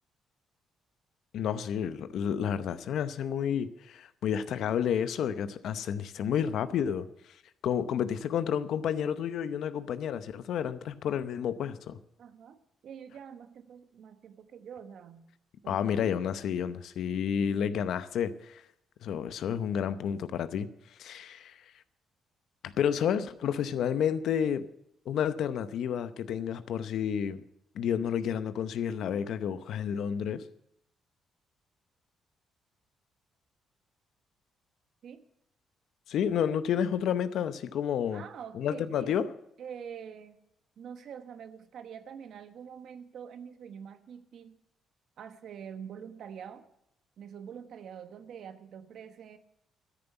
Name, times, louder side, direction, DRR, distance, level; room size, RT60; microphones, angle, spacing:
voice 1, 1.3-7.1 7.6-12.0 15.6-18.6 19.0-20.7 21.0-21.6 22.6-24.7 25.1-27.4 27.7-30.5 36.1-38.2 38.5-39.3, left 8 dB, 75° left, 13 dB, 0.8 m, -30 dB
voice 2, 12.2-15.3 15.6-15.8 23.6-23.8 35.0-35.3 38.1-39.2 39.6-40.4 40.8-44.6 45.2-46.6 47.2-49.4, right 7 dB, 70° right, 10 dB, 1.1 m, -45 dB
13.0 x 7.0 x 9.1 m, 0.78 s
cardioid pair, 90°, 0 cm